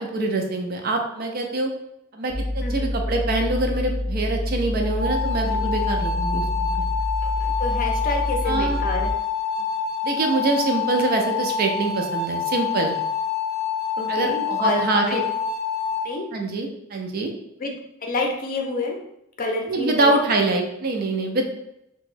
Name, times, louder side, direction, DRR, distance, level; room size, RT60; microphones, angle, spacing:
voice 1, 0.0-1.7 2.1-6.8 8.5-8.8 10.0-13.0 14.1-15.2 16.3-17.3 19.7-21.4, right 2 dB, 50° right, 3 dB, 0.5 m, -24 dB
sound 1, 2.3-9.1, left 1 dB, 5° right, 0.6 m, -27 dB
voice 2, 2.6-2.9 7.2-9.1 14.0-15.2 16.0-16.3 17.6-17.7 18.0-19.0 19.4-20.2, left 2 dB, 45° left, 1 dB, 0.5 m, -28 dB
sound 2, 4.8-16.1, left 6 dB, 90° right, 1.0 m, -27 dB
2.9 x 2.2 x 3.2 m, 0.79 s
head